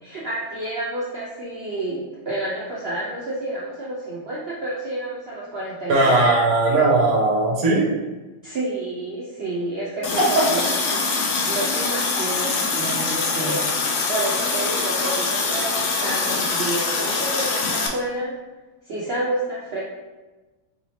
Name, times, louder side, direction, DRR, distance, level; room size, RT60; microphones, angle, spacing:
voice 1, 0.0-6.3 8.4-11.0 11.5-18.3 18.9-19.8, right 1 dB, 85° right, -5 dB, 0.5 m, -29 dB
voice 2, 5.9-7.9, right 2 dB, 60° right, -1 dB, 1.1 m, -18 dB
Water tap faucet, 10.0-17.9, left 4 dB, 65° left, 1.0 m, -24 dB
4.7 x 2.8 x 3.0 m, 1.2 s
omnidirectional pair, 1.8 m